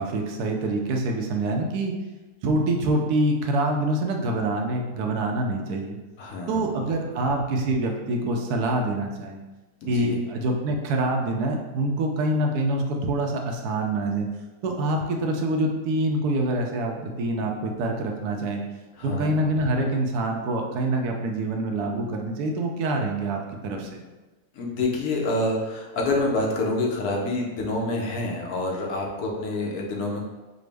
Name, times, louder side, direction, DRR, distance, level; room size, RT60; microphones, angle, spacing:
voice 1, 0.0-1.9 2.4-6.0 6.5-9.4 9.9-14.3 14.6-18.6 19.0-24.0, right 1 dB, 85° right, 2 dB, 1.1 m, -25 dB
voice 2, 6.2-6.9 9.8-10.2 19.0-19.4 24.5-30.2, left 2 dB, 75° left, -1 dB, 1.2 m, -27 dB
4.9 x 2.0 x 3.3 m, 1.2 s
omnidirectional pair, 1.6 m